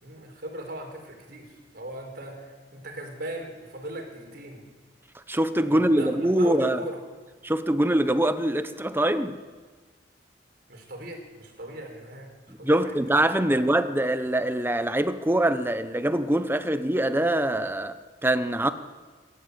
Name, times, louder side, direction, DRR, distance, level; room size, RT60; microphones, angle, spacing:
voice 1, 0.0-4.6 5.7-7.0 10.7-12.3 12.6-12.9 13.4-13.7, right 1 dB, 60° right, 4.7 m, -39 dB
voice 2, 5.3-6.8 7.4-9.3 12.6-18.7, right 1 dB, 10° right, 1.0 m, -24 dB
27.0 x 12.5 x 8.2 m
head